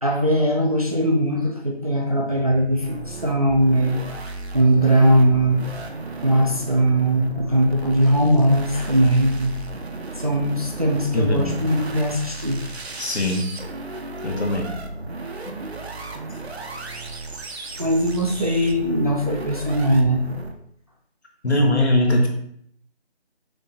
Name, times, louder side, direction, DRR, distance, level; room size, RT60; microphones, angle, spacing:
voice 1, 0.0-4.0 4.5-5.6 6.2-9.6 10.2-12.6 17.8-20.2, right 1 dB, 35° right, 0 dB, 0.5 m, -20 dB
sound 1, 2.8-20.5, right 3 dB, 75° right, 0.8 m, -35 dB
voice 2, 11.1-11.6 13.0-13.5 14.2-14.8 21.4-22.3, left 1 dB, 90° left, 2 dB, 1.3 m, -21 dB
6.5 x 3.0 x 2.6 m, 0.68 s
figure-of-eight pair, 170°, 32 cm